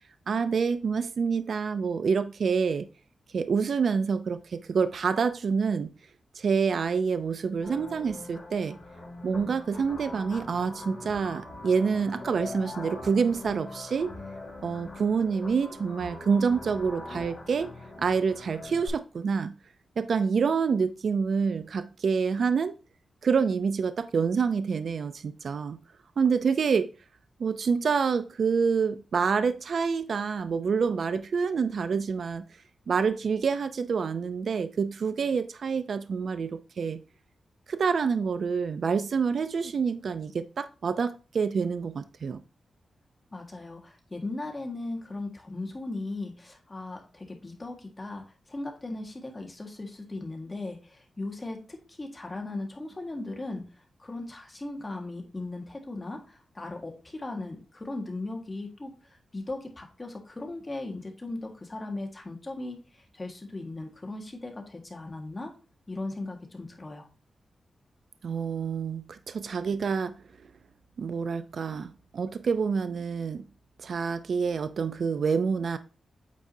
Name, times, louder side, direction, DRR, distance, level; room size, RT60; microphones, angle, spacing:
voice 1, 0.3-2.9 3.3-5.9 6.4-8.8 9.2-14.1 14.6-17.7 18.0-19.5 20.0-22.7 23.2-25.8 26.2-26.9 27.4-32.4 32.9-37.0 37.7-42.4 68.2-70.1 71.0-73.4 73.8-75.8, right 5 dB, 65° right, 0.4 m, -27 dB
sound 1, 7.6-18.9, left 2 dB, 45° left, 2.7 m, -42 dB
voice 2, 43.3-53.6 54.0-65.5 65.9-67.1, left 2 dB, 25° left, 1.6 m, -38 dB
8.5 x 4.7 x 2.7 m
cardioid pair, 85°, 0 cm